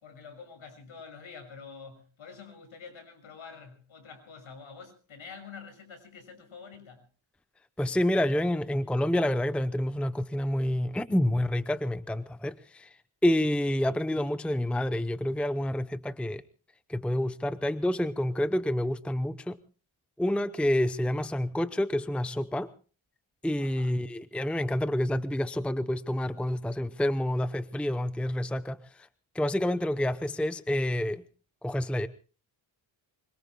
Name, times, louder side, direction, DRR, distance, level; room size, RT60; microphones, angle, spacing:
voice 1, 0.0-7.0 23.6-24.0, left 5 dB, 80° left, 6.6 m, -47 dB
voice 2, 7.8-16.4 16.9-19.6 20.2-22.7 23.4-29.1 29.3-31.2 31.6-32.1, left 1 dB, ahead, 0.7 m, -28 dB
26.0 x 24.5 x 2.2 m
cardioid pair, 100°, 48 cm